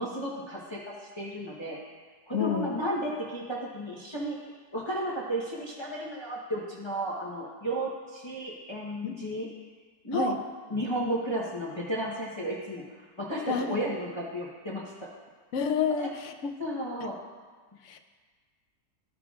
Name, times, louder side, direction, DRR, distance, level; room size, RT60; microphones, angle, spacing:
voice 1, 0.0-1.8 2.3-4.4 4.7-9.5 10.0-10.3 10.7-15.1 16.0-16.1 16.6-17.2, right 1 dB, 20° left, -5 dB, 0.9 m, -33 dB
voice 2, 2.3-2.7 9.0-9.2 10.1-10.4 13.5-13.8 15.5-16.5 17.9-18.0, left 6 dB, 65° left, 5 dB, 0.8 m, -29 dB
14.5 x 5.7 x 2.4 m, 1.4 s
omnidirectional pair, 1.7 m